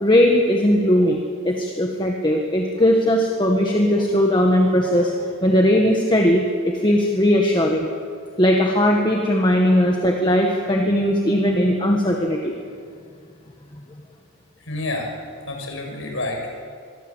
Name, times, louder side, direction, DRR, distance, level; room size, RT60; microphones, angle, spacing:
voice 1, 0.0-5.1 5.4-7.9 8.4-12.5, equal, 20° left, 1 dB, 1.7 m, -18 dB
voice 2, 14.7-15.1 15.5-16.5, left 2 dB, 60° left, 2 dB, 6.3 m, -28 dB
24.0 x 24.0 x 8.3 m, 2.2 s
head